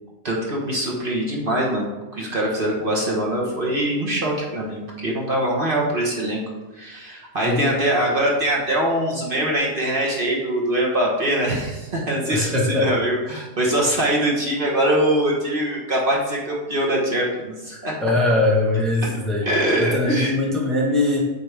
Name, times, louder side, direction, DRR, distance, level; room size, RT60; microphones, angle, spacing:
voice 1, 0.2-1.9 2.1-6.4 6.7-17.9 19.0-19.1 19.4-20.3, right 1 dB, 45° right, -3 dB, 1.5 m, -23 dB
voice 2, 12.3-12.9 18.0-21.2, left 2 dB, ahead, -4 dB, 1.1 m, -21 dB
8.2 x 4.3 x 3.4 m, 1.1 s
omnidirectional pair, 1.3 m